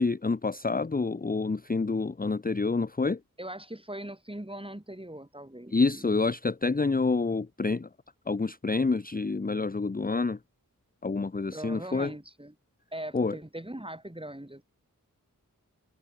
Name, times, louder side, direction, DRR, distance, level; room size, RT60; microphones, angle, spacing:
voice 1, 0.0-3.2 5.7-7.9 8.3-10.4 11.0-12.1 13.1-13.4, left 3 dB, 25° left, 0.7 m, -28 dB
voice 2, 3.4-6.1 11.5-12.5 12.9-14.6, right 1 dB, 15° right, 5.3 m, -40 dB
wide cardioid pair, 55°, 34 cm